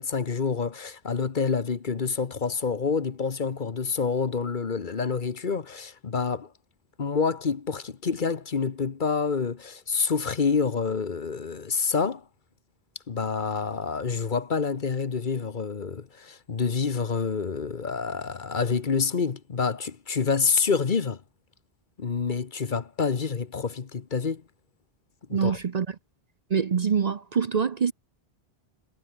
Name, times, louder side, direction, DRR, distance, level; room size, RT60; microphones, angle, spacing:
voice 1, 0.0-6.5 7.0-12.2 13.1-21.2 22.0-24.4 25.3-25.6, left 5 dB, 50° left, 1.2 m, -27 dB
voice 2, 25.3-26.0 26.5-27.9, right 6 dB, 45° right, 0.7 m, -25 dB
omnidirectional pair, 1.1 m